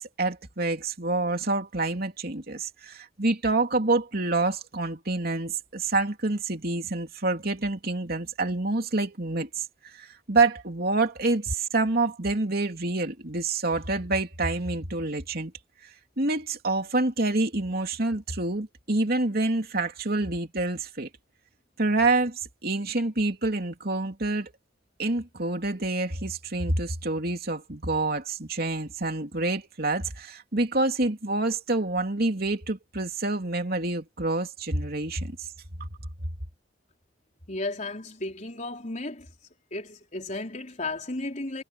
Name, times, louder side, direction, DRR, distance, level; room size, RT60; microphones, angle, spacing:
voice 1, 0.0-15.5 16.2-21.1 21.8-24.5 25.0-35.5, right 2 dB, 55° right, 3.0 m, -27 dB
voice 2, 37.5-39.3 39.7-41.6, left 2 dB, 40° left, 4.1 m, -34 dB
head